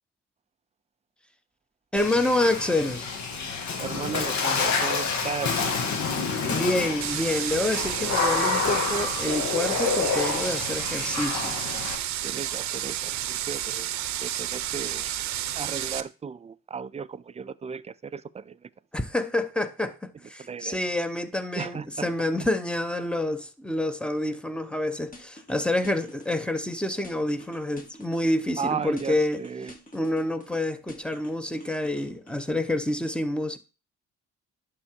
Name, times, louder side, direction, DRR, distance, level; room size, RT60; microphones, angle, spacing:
voice 1, 1.9-3.1 6.5-11.6 18.9-33.6, left 1 dB, 5° left, 0.8 m, -28 dB
Water / Splash splatter, 2.0-12.0, left 5 dB, 65° left, 1.7 m, -28 dB
voice 2, 3.8-5.6 7.7-8.1 12.2-13.9 14.2-15.1 15.6-18.6 20.5-20.8 21.6-22.1 28.6-29.7, right 6 dB, 25° right, 0.3 m, -35 dB
sound 1, 7.0-16.0, right 12 dB, 65° right, 0.6 m, -31 dB
sound 2, 25.1-26.7 27.0-28.7 29.0-30.6 30.9-32.5, left 1 dB, 25° left, 1.8 m, -47 dB
11.0 x 3.8 x 4.4 m
cardioid pair, 90°, 30 cm